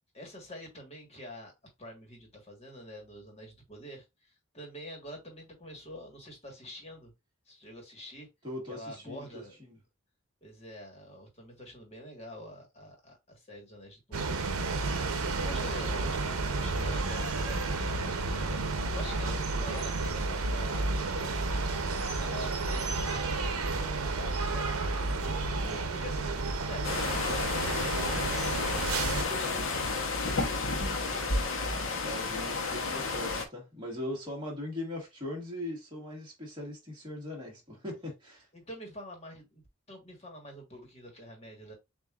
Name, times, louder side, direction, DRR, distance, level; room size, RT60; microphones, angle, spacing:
voice 1, 0.1-1.5 1.8-7.1 7.5-8.3 8.7-9.5 10.4-14.5 15.2-21.8 22.1-25.4 25.9-31.4 38.5-39.6 39.9-41.7, equal, 30° left, 1.4 m, -46 dB
voice 2, 8.4-9.8 25.6-25.8 32.0-38.5, left 1 dB, 20° right, 1.7 m, -40 dB
sound 1, 14.1-29.2, right 3 dB, 85° right, 0.7 m, -31 dB
sound 2, 26.8-33.4, left 3 dB, 70° left, 0.9 m, -31 dB
6.9 x 2.5 x 2.4 m
head